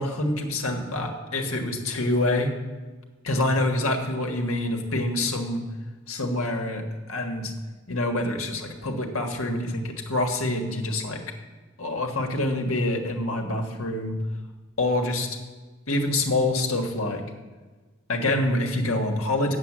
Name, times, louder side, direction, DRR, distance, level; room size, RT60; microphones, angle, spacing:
voice 1, 0.0-2.5 3.2-5.6 6.1-6.8 7.1-7.5 7.9-11.2 11.8-14.2 14.8-15.3 15.9-17.2 18.1-19.6, left 1 dB, 90° left, 2 dB, 1.5 m, -26 dB
8.8 x 7.3 x 7.4 m, 1.3 s
head